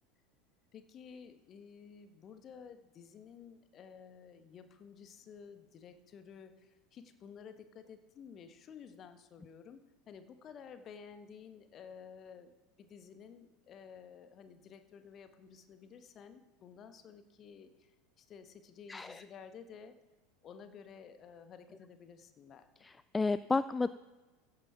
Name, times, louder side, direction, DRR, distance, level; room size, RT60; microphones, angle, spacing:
voice 1, 0.7-17.9 18.2-19.9 20.4-22.7, left 7 dB, 35° left, 9 dB, 1.3 m, -53 dB
voice 2, 18.9-19.2 22.8-23.9, left 3 dB, 15° left, 15 dB, 0.3 m, -32 dB
16.0 x 8.4 x 5.7 m, 1.2 s
figure-of-eight pair, 75°, 0 cm